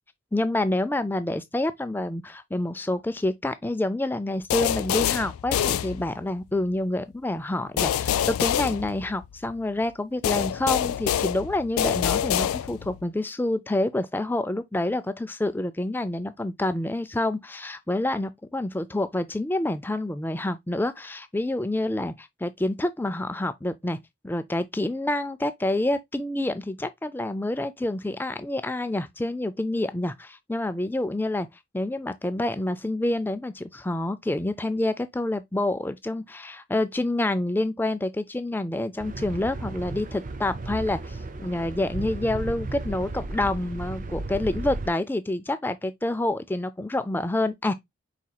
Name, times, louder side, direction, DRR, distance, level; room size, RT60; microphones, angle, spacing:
voice 1, 0.3-24.0 24.2-31.5 31.7-47.7, left 1 dB, 10° left, 0.3 m, -28 dB
sound 1, 4.5-6.4 7.8-9.5 10.2-13.0, left 10 dB, 85° left, 0.3 m, -26 dB
sound 2, 39.0-44.9, right 2 dB, 40° right, 0.6 m, -34 dB
5.0 x 4.2 x 2.2 m
head